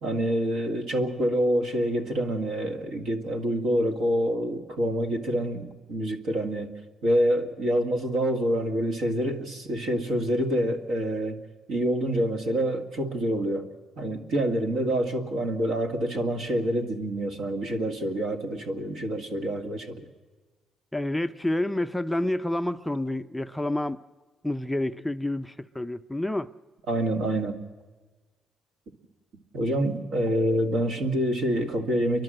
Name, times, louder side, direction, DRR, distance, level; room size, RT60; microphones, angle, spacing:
voice 1, 0.0-6.7 7.0-11.4 11.7-13.7 14.0-20.1 26.9-27.6 29.5-32.2, right 1 dB, 75° right, 4 dB, 2.0 m, -26 dB
voice 2, 20.9-24.0 24.4-26.5, left 1 dB, 5° left, 9 dB, 0.5 m, -28 dB
30.0 x 12.0 x 7.8 m, 1.3 s
supercardioid pair, 75°, 0 cm